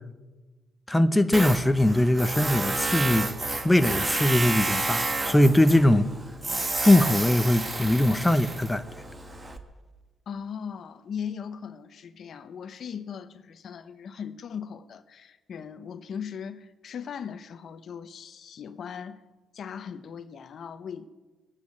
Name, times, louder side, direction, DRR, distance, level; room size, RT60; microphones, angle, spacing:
voice 1, 0.9-3.3 3.6-6.1 6.8-8.8, left 1 dB, 10° left, 0.8 m, -21 dB
Tools, 1.3-9.6, right 2 dB, 25° right, 1.5 m, -30 dB
voice 2, 10.3-19.2 19.5-21.1, left 7 dB, 60° left, 0.9 m, -38 dB
19.0 x 8.3 x 8.6 m
cardioid pair, 90°, 0 cm